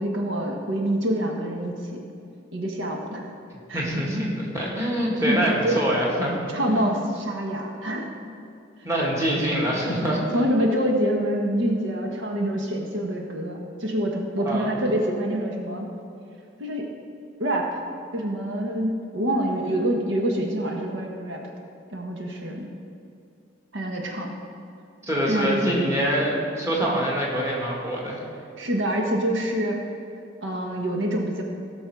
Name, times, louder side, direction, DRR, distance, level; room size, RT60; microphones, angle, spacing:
voice 1, 0.0-2.0 2.5-3.3 3.7-3.8 5.2-5.8 6.5-8.2 10.3-15.9 16.6-16.9 17.4-17.8 18.1-21.4 21.9-22.7 23.7-24.3 25.3-25.9 28.6-29.8 30.4-31.4, right 1 dB, 80° right, 1 dB, 1.4 m, -26 dB
voice 2, 3.7-4.3 4.5-6.3 6.7-7.0 8.8-10.2 14.0-14.8 25.0-28.2, equal, 15° right, -4 dB, 1.9 m, -25 dB
17.0 x 6.3 x 4.8 m, 2.5 s
head